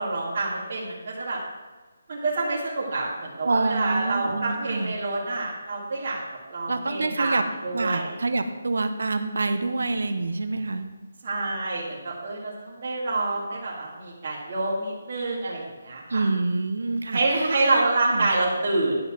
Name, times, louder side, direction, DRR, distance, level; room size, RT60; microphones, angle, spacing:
voice 1, 0.0-1.4 2.1-6.2 6.5-7.4 7.6-8.1 11.2-16.2 17.1-19.0, right 2 dB, 45° right, -6 dB, 2.0 m, -27 dB
voice 2, 3.4-4.9 6.7-7.4 7.7-10.9 16.1-17.8 18.1-18.3, right 3 dB, 75° right, 8 dB, 1.0 m, -27 dB
10.5 x 4.0 x 7.5 m, 1.3 s
figure-of-eight pair, 160°, 0 cm